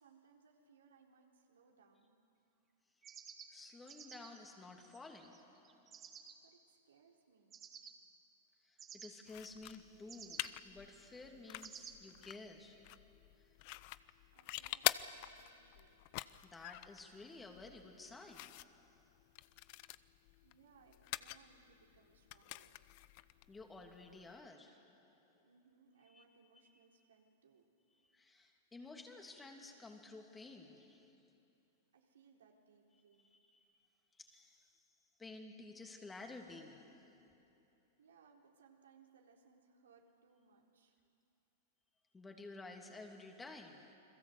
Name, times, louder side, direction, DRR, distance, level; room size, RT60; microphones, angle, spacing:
voice 1, 0.0-2.1 6.4-7.7 13.3-13.4 14.3-16.0 20.4-22.8 25.4-27.7 31.9-33.3 38.0-41.0, right 5 dB, 85° right, 4.0 m, -67 dB
sound 1, 3.0-6.3 7.5-7.9 8.8-9.1 10.1-10.5 11.6-11.9, right 7 dB, 25° right, 2.6 m, -53 dB
voice 2, 3.5-6.1 8.6-13.5 16.4-19.1 23.5-25.5 26.1-26.2 28.1-31.4 33.3-33.6 34.1-34.8 35.2-37.5 42.1-44.0, left 3 dB, 15° left, 2.9 m, -54 dB
sound 2, 9.3-24.4, left 18 dB, 50° left, 0.7 m, -46 dB
29.5 x 22.0 x 8.1 m
hypercardioid pair, 120°, 0 cm